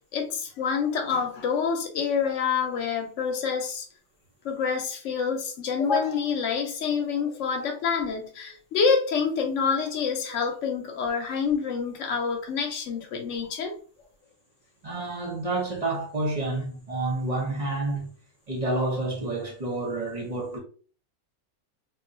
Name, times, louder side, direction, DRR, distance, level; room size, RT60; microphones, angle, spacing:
voice 1, 0.1-3.8 4.4-13.7, left 6 dB, 60° left, 1.0 m, -27 dB
voice 2, 14.8-18.1 18.5-20.6, right 2 dB, 40° right, 0.6 m, -29 dB
2.3 x 2.3 x 3.9 m
omnidirectional pair, 1.5 m